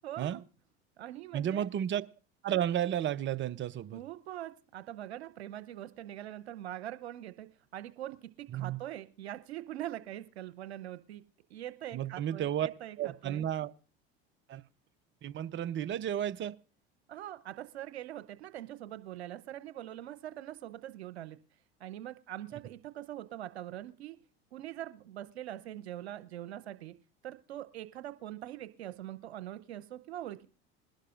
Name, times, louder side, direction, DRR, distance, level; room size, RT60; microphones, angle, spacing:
voice 1, 0.0-0.4 1.0-1.7 3.9-11.2 11.5-13.5 17.1-21.4 21.8-24.2 24.5-26.9 27.2-30.5, right 12 dB, 85° right, 12 dB, 0.9 m, -43 dB
voice 2, 1.3-2.0 2.4-4.0 8.5-8.8 11.9-12.7 13.0-13.7 14.5-14.6 15.2-16.5, right 10 dB, 40° right, 14 dB, 0.8 m, -32 dB
21.5 x 11.5 x 2.5 m, 0.35 s
hypercardioid pair, 80°, 31 cm